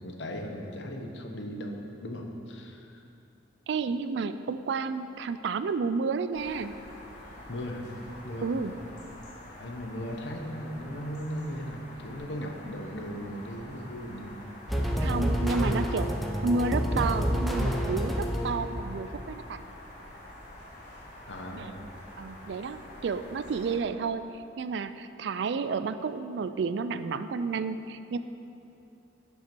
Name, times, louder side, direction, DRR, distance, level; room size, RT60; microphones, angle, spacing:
voice 1, 0.0-3.0 7.5-7.9 8.2-8.8 9.6-14.4 14.8-15.0 21.3-21.9, equal, 65° left, 2 dB, 0.9 m, -38 dB
voice 2, 3.7-6.7 8.4-8.7 15.0-16.1 16.4-19.6 21.5-21.7 22.2-28.2, right 4 dB, 65° right, 12 dB, 0.3 m, -31 dB
sound 1, 6.3-23.8, left 1 dB, 45° left, 1.9 m, -47 dB
sound 2, 14.7-18.8, equal, ahead, 0.6 m, -28 dB
11.0 x 5.5 x 4.5 m, 2.7 s
head